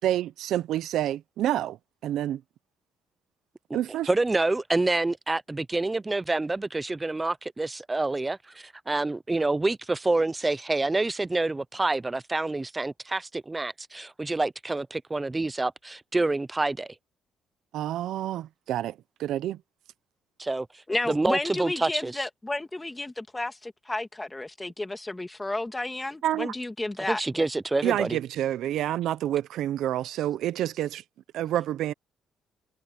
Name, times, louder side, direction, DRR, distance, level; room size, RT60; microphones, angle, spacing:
voice 1, 0.0-1.8 2.0-2.4 3.7-4.1 17.7-19.6 26.2-26.5 27.8-31.0 31.3-31.9, right 12 dB, 75° right, 0.6 m, -28 dB
voice 2, 3.7-16.9 20.4-20.7 21.1-22.3 27.1-28.2, right 2 dB, 15° right, 0.5 m, -27 dB
voice 3, 20.9-27.5, left 2 dB, 10° left, 1.9 m, -32 dB
cardioid pair, 125°, 0 cm